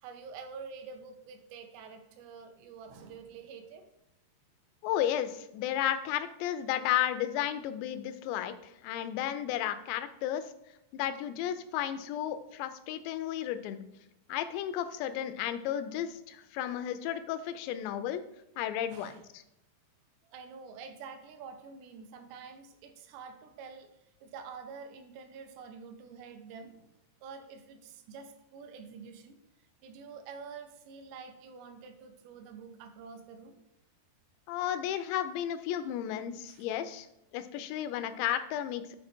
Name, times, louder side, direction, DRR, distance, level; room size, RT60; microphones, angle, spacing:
voice 1, 0.0-3.8 18.9-19.2 20.3-26.9 27.2-29.4 29.8-33.6 36.5-36.7, right 5 dB, 80° right, 6 dB, 2.8 m, -47 dB
voice 2, 4.8-10.4 10.9-13.8 14.3-18.2 18.6-19.4 34.5-37.1 37.3-39.0, left 11 dB, 85° left, 11 dB, 2.8 m, -33 dB
7.8 x 4.2 x 4.4 m, 0.84 s
omnidirectional pair, 5.0 m